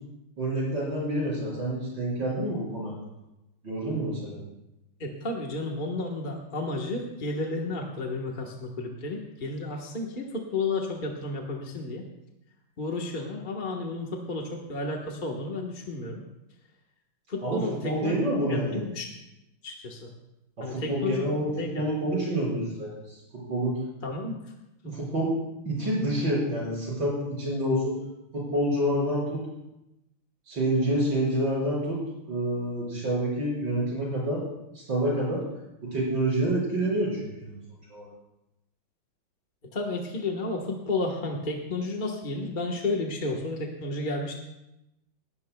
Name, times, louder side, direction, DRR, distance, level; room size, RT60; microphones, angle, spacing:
voice 1, 0.4-2.9 3.6-4.4 17.4-18.8 20.6-23.8 24.8-25.3 25.6-28.0 28.3-29.4 30.5-32.0 32.3-34.4 34.7-35.4 35.8-37.5 37.9-38.1, right 1 dB, 55° right, -6 dB, 6.3 m, -28 dB
voice 2, 5.0-12.0 12.8-16.2 17.3-18.2 18.5-19.0 19.6-20.1 20.6-21.2 21.6-21.9 24.0-24.3 39.7-44.4, left 2 dB, 30° left, 0 dB, 1.1 m, -32 dB
20.5 x 16.5 x 2.3 m, 0.90 s
omnidirectional pair, 2.4 m